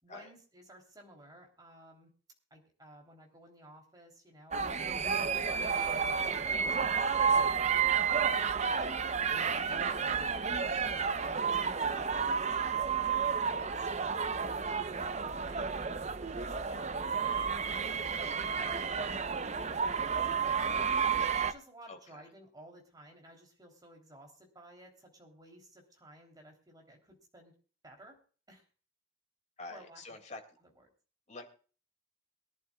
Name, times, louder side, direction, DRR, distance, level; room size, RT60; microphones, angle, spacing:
voice 1, 0.0-2.1 2.5-5.0 5.6-8.9 9.7-13.9 14.3-15.9 16.3-20.6 21.4-27.5 27.8-28.2 28.5-28.7 29.7-30.0, right 1 dB, 20° right, 2 dB, 3.3 m, -56 dB
sound 1, 4.5-21.5, right 6 dB, 40° right, 0.7 m, -31 dB
voice 2, 9.8-10.3 21.9-22.2 29.6-30.4 31.3-31.5, left 3 dB, 40° left, 4 dB, 2.4 m, -47 dB
22.5 x 11.0 x 2.3 m, 0.40 s
head